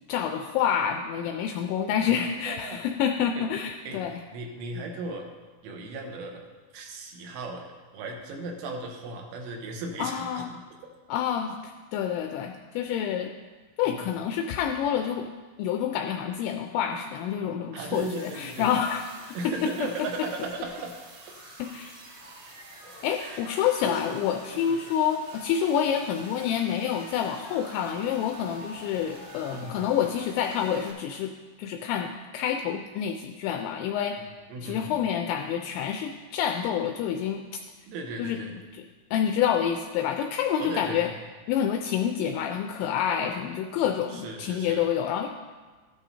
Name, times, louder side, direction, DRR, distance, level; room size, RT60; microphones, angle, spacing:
voice 1, 0.1-4.2 10.0-10.5 11.1-13.3 13.8-15.3 15.6-19.0 19.4-19.7 21.6-21.9 23.0-31.3 31.6-34.2 34.6-37.4 38.2-38.4 38.7-38.8 39.1-41.1 41.5-45.3, left 9 dB, 85° left, 4 dB, 2.6 m, -28 dB
voice 2, 2.1-2.8 3.4-3.5 3.9-4.0 4.3-5.3 5.6-6.5 6.7-10.6 13.9-14.1 17.7-18.7 19.3-21.0 23.2-23.5 23.8-24.0 24.5-24.7 29.5-29.9 34.5-35.0 37.9-38.5 40.6-41.1 44.1-44.8, right 2 dB, 80° right, 2 dB, 3.4 m, -36 dB
sound 1, 17.9-30.9, equal, 50° right, 2.5 m, -46 dB
13.5 x 10.5 x 2.8 m, 1.4 s
omnidirectional pair, 5.7 m